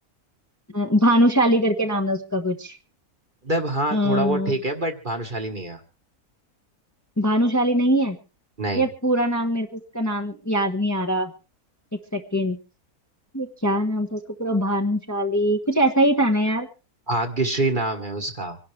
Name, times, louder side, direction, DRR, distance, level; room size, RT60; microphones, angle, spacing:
voice 1, 0.7-2.8 3.9-4.5 7.2-8.2 8.7-11.3 12.1-12.6 13.3-16.7, equal, 10° left, 3 dB, 1.2 m, -22 dB
voice 2, 3.4-5.8 8.6-8.8 17.1-18.6, right 2 dB, 35° right, 4 dB, 1.6 m, -25 dB
25.5 x 11.5 x 3.3 m, 0.32 s
omnidirectional pair, 1.6 m